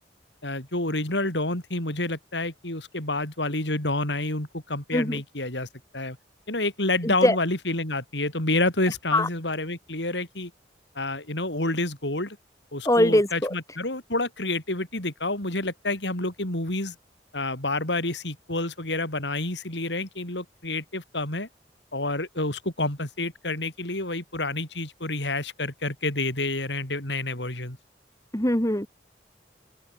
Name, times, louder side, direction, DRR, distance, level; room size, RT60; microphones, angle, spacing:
voice 1, 0.4-6.2 6.5-10.5 11.0-12.4 12.7-17.0 17.3-21.5 21.9-27.8, left 2 dB, 80° left, 6.9 m, -29 dB
voice 2, 12.9-13.5 28.3-28.9, left 1 dB, 20° left, 2.7 m, -21 dB
open air
head